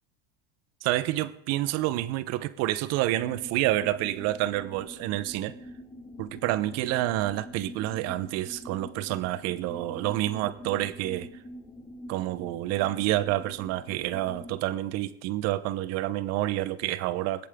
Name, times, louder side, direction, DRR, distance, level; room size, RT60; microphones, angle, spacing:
voice 1, 0.8-5.5 6.2-11.3 12.1-17.5, right 15 dB, 55° right, 1.0 m, -28 dB
sound 1, 3.1-14.6, left 1 dB, 15° left, 2.7 m, -45 dB
21.5 x 8.4 x 3.8 m
supercardioid pair, 110°, 30 cm